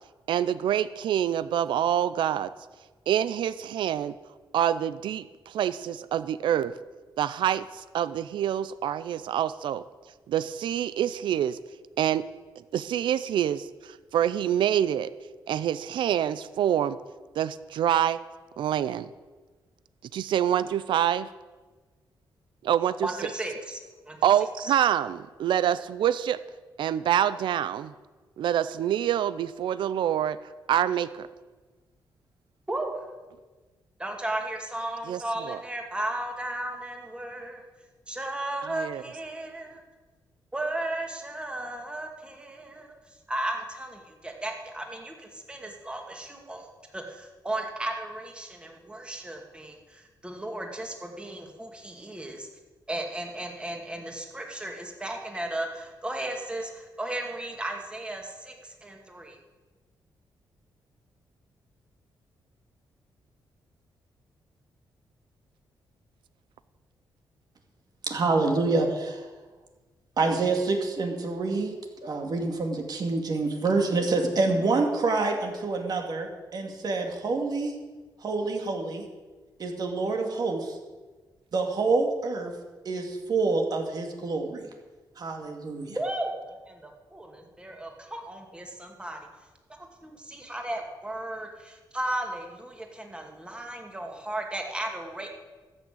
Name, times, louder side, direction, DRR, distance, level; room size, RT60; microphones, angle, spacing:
voice 1, 0.3-2.5 3.1-4.1 4.5-6.7 7.2-9.8 10.3-11.6 12.0-12.2 12.7-15.1 15.5-17.0 17.4-18.2 18.6-19.1 20.1-21.3 22.6-23.1 24.2-26.4 26.8-27.9 28.4-30.4 30.7-31.3 35.1-35.6 38.7-39.0, right 10 dB, 80° right, 15 dB, 0.5 m, -26 dB
voice 2, 23.0-23.8 24.1-24.2 24.6-24.7 32.7-33.0 34.0-37.6 38.1-39.8 40.5-42.9 43.3-46.7 46.9-52.5 52.9-59.4 86.0-86.3 86.7-89.2 90.0-95.3, right 1 dB, 15° right, 2 dB, 2.3 m, -35 dB
voice 3, 68.1-69.3 70.2-71.7 72.0-77.7 78.2-79.1 79.6-80.8 81.5-82.5 82.8-84.7 85.2-86.0, right 3 dB, 55° right, 3 dB, 2.3 m, -27 dB
13.5 x 6.4 x 8.5 m, 1.3 s
cardioid pair, 95°, 8 cm